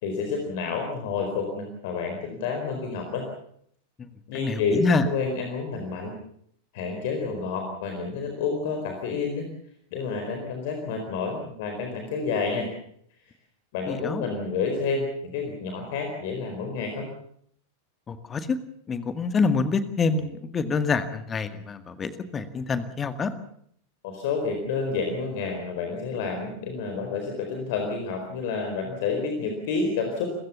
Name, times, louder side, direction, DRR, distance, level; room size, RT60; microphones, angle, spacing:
voice 1, 0.0-3.3 4.3-6.2 6.7-9.5 9.9-12.7 13.7-17.1 24.0-30.3, left 4 dB, 50° left, 4 dB, 4.5 m, -29 dB
voice 2, 4.3-5.1 13.9-14.2 18.1-18.6 18.9-23.3, left 4 dB, 20° left, 10 dB, 2.0 m, -26 dB
30.0 x 15.5 x 7.1 m, 0.68 s
figure-of-eight pair, 90°, 0 cm